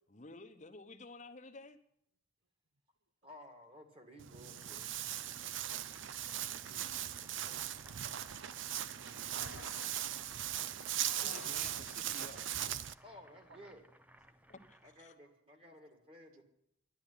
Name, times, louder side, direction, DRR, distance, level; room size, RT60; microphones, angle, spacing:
voice 1, 0.1-1.8 11.2-12.8 14.5-15.1, left 3 dB, 35° left, 0.9 m, -53 dB
voice 2, 3.2-4.9 13.0-13.9 14.8-16.4, equal, 25° right, 2.1 m, -55 dB
Walk footsteps, 4.2-12.9, right 11 dB, 60° right, 0.5 m, -39 dB
Boiling, 4.4-15.1, right 1 dB, 5° right, 0.5 m, -60 dB
sound 1, 9.4-10.2 10.9-12.0, left 6 dB, 75° left, 0.6 m, -52 dB
voice 3, 13.5-13.8 15.7-15.8, right 4 dB, 75° right, 1.1 m, -69 dB
11.0 x 10.5 x 9.8 m
head